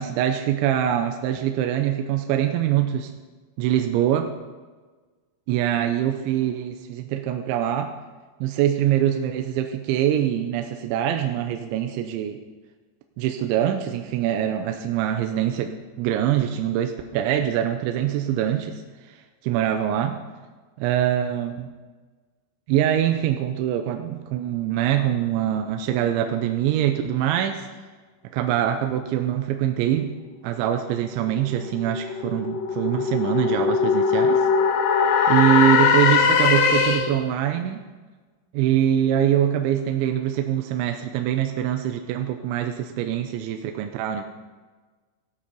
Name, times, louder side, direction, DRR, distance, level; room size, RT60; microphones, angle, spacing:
voice 1, 0.0-3.1 3.6-4.3 5.5-7.9 8.4-12.4 13.2-15.7 16.0-18.8 19.1-19.2 19.4-20.2 20.8-21.5 22.7-27.7 28.3-30.1 30.4-34.5 35.3-37.8 38.5-44.2, right 10 dB, 85° right, 5 dB, 3.0 m, -23 dB
sound 1, 31.1-37.3, left 6 dB, 75° left, 2.9 m, -21 dB
15.5 x 8.5 x 5.3 m, 1.3 s
omnidirectional pair, 5.4 m